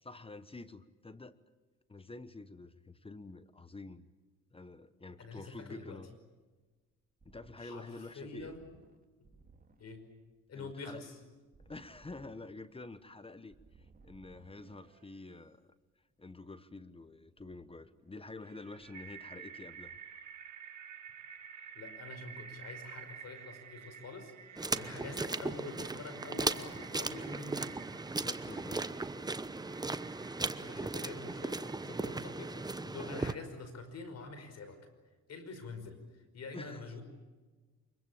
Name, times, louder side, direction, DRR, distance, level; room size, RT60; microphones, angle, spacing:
voice 1, 0.0-1.4 1.9-4.1 4.5-6.1 7.2-8.6 10.5-11.0 11.6-15.8 16.2-20.0 24.7-24.9 28.1-28.9 36.5-36.8, left 3 dB, 20° left, 14 dB, 1.1 m, -48 dB
voice 2, 5.2-6.0 7.6-8.7 9.8-10.0 10.5-11.2 21.6-27.9 30.2-34.8 35.3-37.0, left 3 dB, 55° left, 9 dB, 5.2 m, -46 dB
sound 1, 6.8-15.5 17.4-18.5 18.8-20.0, right 3 dB, 30° right, 2.9 m, -63 dB
sound 2, 18.4-32.7, right 8 dB, 75° right, 2.2 m, -51 dB
sound 3, 24.6-33.3, right 3 dB, 15° right, 0.9 m, -37 dB
24.0 x 22.5 x 8.7 m, 1.3 s
cardioid pair, 90°, 30 cm